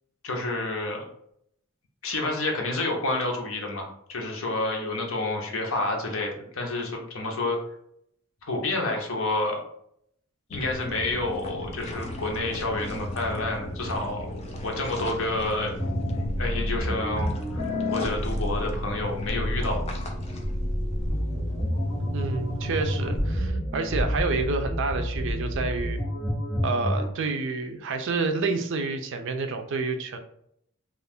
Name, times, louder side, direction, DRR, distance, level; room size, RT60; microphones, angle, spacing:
voice 1, 0.2-1.1 2.0-7.6 8.4-9.6 10.5-14.3 14.6-15.7 16.4-17.6 17.9-19.8, left 2 dB, 75° left, 1 dB, 0.7 m, -29 dB
sound 1, 10.5-23.5, left 1 dB, 30° left, 0.4 m, -36 dB
sound 2, 15.8-27.1, equal, 10° left, 1.2 m, -29 dB
voice 2, 22.1-26.0 26.6-30.2, right 3 dB, 60° right, 7 dB, 0.4 m, -29 dB
2.5 x 2.4 x 3.4 m, 0.72 s
head